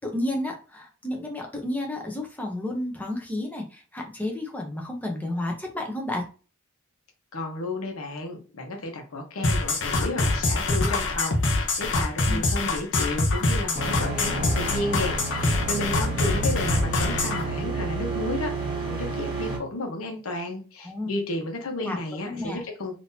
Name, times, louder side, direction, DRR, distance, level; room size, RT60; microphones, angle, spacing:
voice 1, 0.0-6.3 12.3-12.4 20.8-21.1 21.7-22.0 22.2-22.6, left 1 dB, 10° left, 1 dB, 0.8 m, -31 dB
voice 2, 7.3-18.5 18.8-23.0, left 2 dB, 85° left, 3 dB, 1.0 m, -32 dB
sound 1, 9.4-17.4, left 2 dB, 60° left, 0.8 m, -24 dB
sound 2, 13.7-19.6, right 3 dB, 20° right, 1.3 m, -30 dB
3.7 x 2.8 x 2.8 m, 0.35 s
head